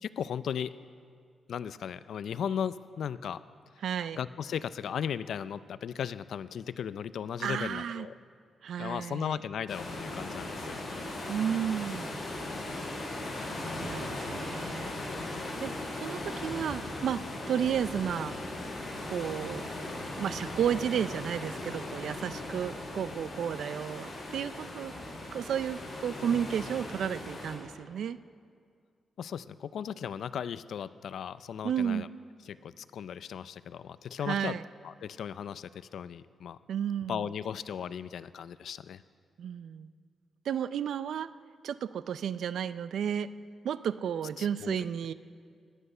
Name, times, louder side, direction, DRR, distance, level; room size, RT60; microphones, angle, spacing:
voice 1, 0.0-0.8 1.5-3.4 4.2-8.1 8.8-10.9 13.6-13.8 29.2-32.1 32.5-34.6 34.8-36.6 37.1-39.0 44.4-44.8, left 8 dB, 75° left, 15 dB, 0.4 m, -36 dB
voice 2, 3.8-4.2 7.4-8.1 8.6-9.3 11.3-12.2 13.7-15.0 15.6-15.7 16.0-18.3 19.1-19.7 20.2-24.9 25.3-28.2 31.6-32.1 34.3-34.6 36.7-37.3 39.4-39.9 40.5-41.3 41.6-43.3 43.6-45.1, right 8 dB, 80° right, 15 dB, 0.4 m, -32 dB
sound 1, 9.7-27.6, left 2 dB, 45° left, 5.3 m, -38 dB
18.0 x 12.0 x 5.5 m, 2.1 s
wide cardioid pair, 125°, 0 cm